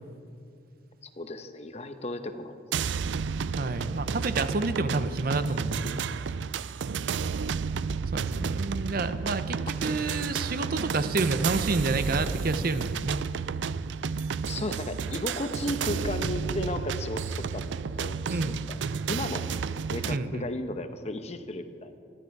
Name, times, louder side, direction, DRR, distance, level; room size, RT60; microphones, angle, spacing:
voice 1, 1.2-2.6 6.9-7.1 14.5-19.5 19.9-21.9, left 1 dB, 35° left, 8 dB, 0.9 m, -35 dB
sound 1, 2.7-20.2, right 6 dB, 85° right, 0.4 m, -31 dB
voice 2, 3.5-6.1 8.1-13.2 18.3-18.6 20.1-20.5, right 3 dB, 55° right, 11 dB, 0.8 m, -29 dB
22.0 x 13.0 x 4.7 m, 2.3 s
head